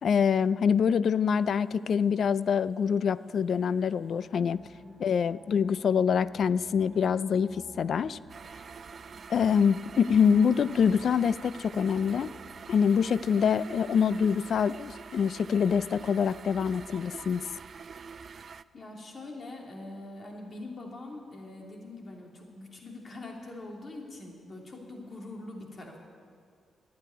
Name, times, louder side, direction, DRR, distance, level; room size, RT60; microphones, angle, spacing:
voice 1, 0.0-4.6 5.0-8.2 9.3-12.3 12.7-17.4, left 7 dB, 60° left, 17 dB, 0.4 m, -25 dB
sound 1, 1.4-13.1, right 3 dB, 75° right, 1.6 m, -55 dB
voice 2, 4.5-4.9 18.7-26.0, left 2 dB, 40° left, 0 dB, 2.8 m, -43 dB
sound 2, 8.3-18.6, right 6 dB, 50° right, 0.3 m, -46 dB
11.5 x 8.8 x 9.4 m, 2.1 s
cardioid pair, 85°, 0 cm